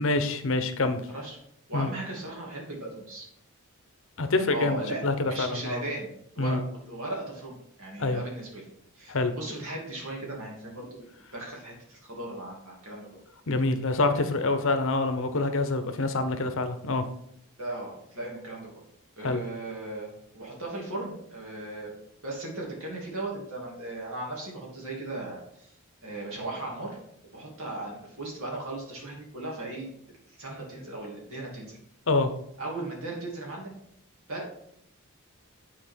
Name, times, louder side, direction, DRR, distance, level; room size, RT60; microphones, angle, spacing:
voice 1, 0.0-1.0 1.7-1.9 4.2-5.8 6.4-6.6 8.0-8.2 9.1-9.3 13.5-17.1 19.2-19.4 32.1-32.3, left 3 dB, 65° left, 9 dB, 0.8 m, -26 dB
voice 2, 1.7-3.3 4.5-8.7 8.9-11.1 11.3-13.1 17.6-18.7 19.2-21.9 22.2-25.7 26.0-27.0 27.3-31.8 32.6-33.7 34.3-34.5, right 2 dB, 70° right, -2 dB, 2.6 m, -37 dB
8.8 x 4.4 x 4.4 m, 0.73 s
head